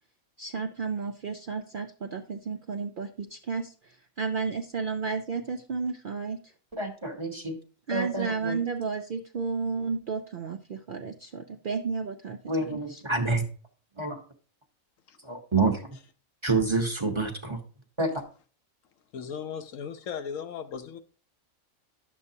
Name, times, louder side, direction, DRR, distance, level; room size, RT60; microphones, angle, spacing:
voice 1, 0.4-6.5 7.9-13.0, right 5 dB, 60° right, 0.5 m, -32 dB
voice 2, 6.7-7.6 7.9-8.6 12.5-13.4 14.0-14.2 15.2-15.8 16.4-17.6 18.0-18.2, right 3 dB, 25° right, 0.8 m, -28 dB
voice 3, 19.1-21.0, left 7 dB, 75° left, 1.1 m, -37 dB
10.5 x 7.3 x 2.7 m
omnidirectional pair, 1.4 m